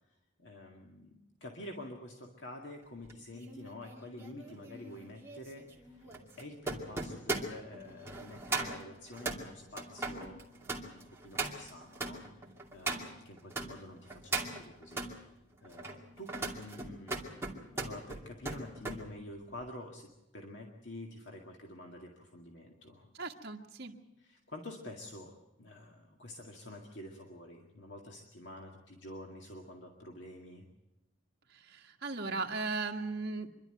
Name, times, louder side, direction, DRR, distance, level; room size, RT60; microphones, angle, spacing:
voice 1, 0.4-6.1 6.4-12.4 12.7-15.1 15.6-23.1 24.2-25.3 25.6-30.6, left 1 dB, 70° left, 1 dB, 2.1 m, -48 dB
sound 1, 3.0-13.7 14.1-15.1 15.6-19.0 19.4-19.7, right 3 dB, 15° right, 2.4 m, -39 dB
voice 2, 23.1-24.0 31.5-33.5, right 3 dB, 55° right, 1 dB, 1.8 m, -37 dB
26.0 x 12.0 x 9.2 m, 0.95 s
head